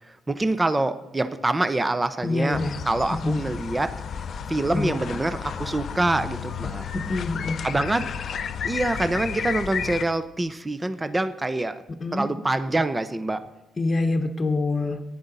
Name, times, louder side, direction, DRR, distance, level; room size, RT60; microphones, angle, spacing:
voice 1, 0.3-2.6 2.9-3.9 4.5-6.8 7.6-8.1 8.6-11.8 12.1-13.4, right 2 dB, 20° right, 11 dB, 0.6 m, -25 dB
voice 2, 2.2-2.8 3.1-3.4 4.7-5.2 6.9-7.6 11.9-12.3 13.8-15.0, left 2 dB, 30° left, 4 dB, 0.9 m, -26 dB
sound 1, 2.5-10.0, left 7 dB, 55° left, 0.5 m, -32 dB
14.5 x 10.0 x 4.0 m, 0.94 s
cardioid pair, 90°, 0 cm